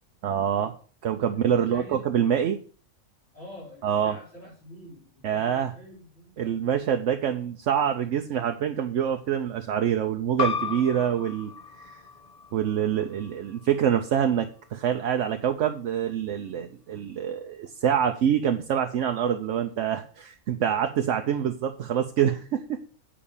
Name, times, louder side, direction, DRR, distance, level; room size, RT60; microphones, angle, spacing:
voice 1, 0.2-0.8 1.0-2.6 3.8-4.1 5.2-5.7 6.4-11.5 11.8-12.0 12.5-22.8, right 9 dB, 75° right, 5 dB, 1.0 m, -26 dB
voice 2, 1.3-2.1 3.3-6.6 7.1-7.2 8.0-8.1 10.5-11.1 21.1-21.4, equal, 55° left, -9 dB, 4.9 m, -47 dB
sound 1, 10.4-15.5, left 5 dB, 35° left, 1.0 m, -35 dB
8.6 x 5.0 x 7.1 m, 0.40 s
omnidirectional pair, 1.3 m